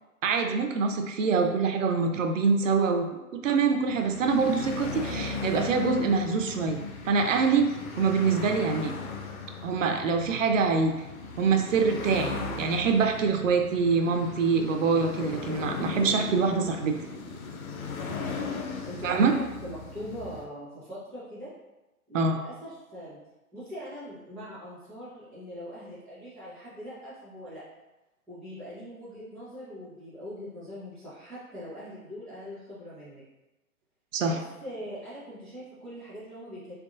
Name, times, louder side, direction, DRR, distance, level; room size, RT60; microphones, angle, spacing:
voice 1, 0.2-3.1 3.3-7.7 8.0-8.9 9.6-10.9 11.4-17.0 19.0-19.3 22.1-22.4 34.1-34.4, right 5 dB, 60° right, 5 dB, 0.5 m, -25 dB
sound 1, 3.6-20.5, left 4 dB, 70° left, 0.7 m, -37 dB
voice 2, 18.9-21.5 22.1-23.2 23.5-27.6 28.3-33.2 34.3-36.7, equal, ahead, -17 dB, 0.3 m, -42 dB
3.4 x 3.1 x 2.6 m, 1.0 s
hypercardioid pair, 125°, 44 cm